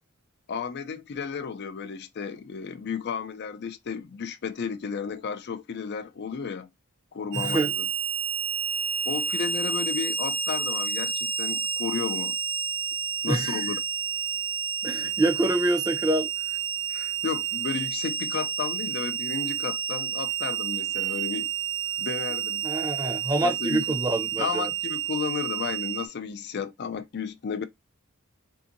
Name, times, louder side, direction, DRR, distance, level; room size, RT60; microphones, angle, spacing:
voice 1, 0.5-6.7 7.1-7.9 9.0-12.4 13.2-13.8 16.9-21.5 22.0-22.7 23.4-23.8 24.4-27.6, left 6 dB, 55° left, 0.4 m, -33 dB
voice 2, 7.3-7.7 13.3-13.8 14.8-16.3 22.6-24.7, right 2 dB, 20° right, 0.7 m, -26 dB
Harmonica, 7.3-26.1, right 8 dB, 85° right, 0.8 m, -30 dB
3.5 x 2.7 x 2.5 m
head